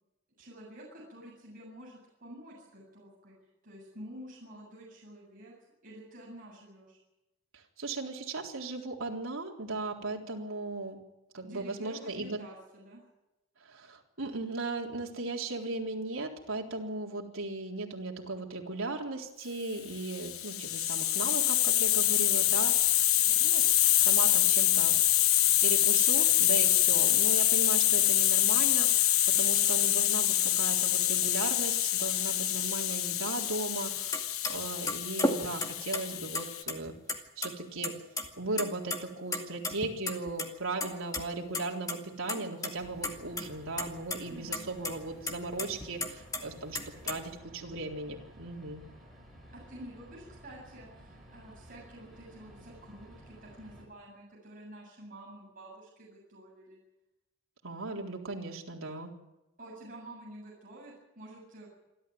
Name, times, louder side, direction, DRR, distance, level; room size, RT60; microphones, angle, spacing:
voice 1, 0.4-3.3 3.6-5.5 5.8-7.0 11.4-13.0 44.3-44.7 49.5-56.8 59.6-61.7, right 1 dB, 40° right, -4 dB, 7.8 m, -49 dB
voice 2, 7.5-11.0 11.3-12.4 13.6-23.6 23.9-25.0 25.6-36.9 37.4-38.0 38.4-48.8 57.6-59.1, right 2 dB, 75° right, 0 dB, 3.9 m, -37 dB
Hiss, 20.0-36.6, left 13 dB, 85° left, 1.1 m, -26 dB
sound 1, 34.1-34.2 34.4-34.5 34.9-36.0 36.3-37.2 37.4-37.5 37.8-38.3 38.5-39.0 39.3-40.5 40.8-41.2 41.5-41.6 41.9-42.0 42.3-42.7 43.0-43.5 43.8-44.2 44.5-44.6 44.8-44.9 45.3-46.4 46.7-47.2, left 2 dB, 15° left, 2.1 m, -32 dB
sound 2, 42.7-53.8, equal, ahead, 6.4 m, -54 dB
27.5 x 13.0 x 9.5 m, 0.97 s
head